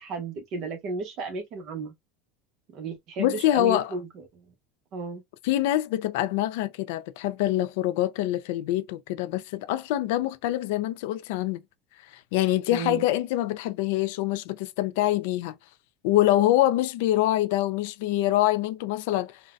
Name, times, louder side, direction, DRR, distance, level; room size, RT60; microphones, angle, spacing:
voice 1, 0.0-1.9 2.7-4.4 4.9-5.2 12.7-13.0, right 3 dB, 40° right, 0.9 m, -34 dB
voice 2, 3.2-3.9 5.4-11.6 12.1-15.5 16.0-19.4, left 14 dB, 65° left, 0.4 m, -25 dB
3.9 x 2.1 x 2.4 m
supercardioid pair, 170°, 0 cm